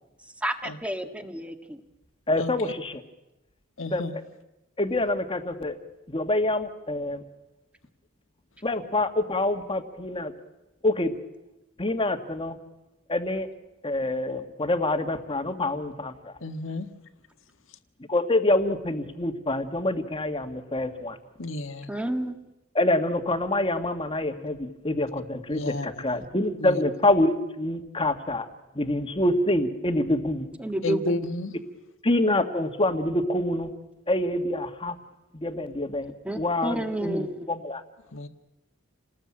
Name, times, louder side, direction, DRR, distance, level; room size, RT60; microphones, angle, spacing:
voice 1, 0.2-1.8 21.9-22.4 30.6-31.3 36.2-37.5, right 1 dB, 5° right, 7 dB, 1.6 m, -31 dB
voice 2, 2.3-3.0 3.9-4.0 4.8-5.8 6.1-7.2 8.6-10.3 10.8-11.1 11.8-12.6 13.1-13.5 13.8-16.3 18.1-21.2 22.7-28.5 28.7-30.5 32.0-33.7 34.1-34.9 35.4-37.8, left 1 dB, 25° left, 7 dB, 1.7 m, -26 dB
voice 3, 3.8-4.2 16.4-16.9 21.4-21.9 25.5-26.2 26.6-26.8 30.8-31.5 38.1-38.3, left 2 dB, 65° left, 8 dB, 1.6 m, -32 dB
29.0 x 19.5 x 8.7 m, 0.99 s
head